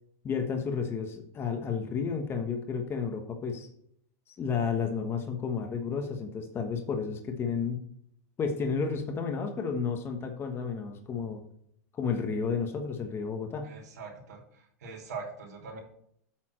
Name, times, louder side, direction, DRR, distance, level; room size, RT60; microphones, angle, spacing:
voice 1, 0.2-3.7 4.4-7.8 8.4-11.4 11.9-13.7, left 5 dB, 25° left, 4 dB, 1.3 m, -32 dB
voice 2, 13.6-15.8, right 4 dB, 85° right, 0 dB, 3.2 m, -42 dB
8.5 x 4.2 x 6.4 m, 0.68 s
hypercardioid pair, 115°, 9 cm